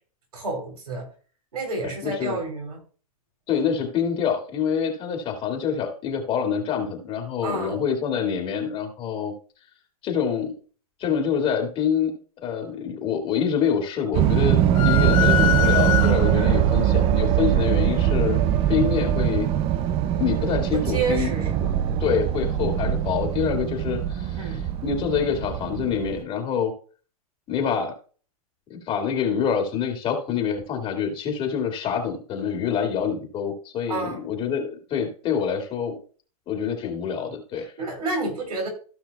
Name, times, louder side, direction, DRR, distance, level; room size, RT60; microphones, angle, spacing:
voice 1, 0.3-1.1 1.5-2.8 7.4-7.8 16.3-16.7 20.7-21.7 24.4-24.6 33.9-34.2 37.8-38.7, right 3 dB, 85° right, 2 dB, 3.7 m, -30 dB
voice 2, 1.8-2.4 3.5-9.3 10.0-10.5 11.0-12.1 12.4-18.4 18.7-19.5 20.2-21.3 22.0-26.7 27.5-27.9 28.7-36.0 36.5-37.7, left 7 dB, 30° left, 2 dB, 2.1 m, -26 dB
sound 1, 14.1-26.2, right 10 dB, 30° right, 0.6 m, -22 dB
sound 2, 14.7-16.6, left 12 dB, 60° left, 1.3 m, -24 dB
15.5 x 5.8 x 2.3 m, 0.40 s
hypercardioid pair, 130°, 19 cm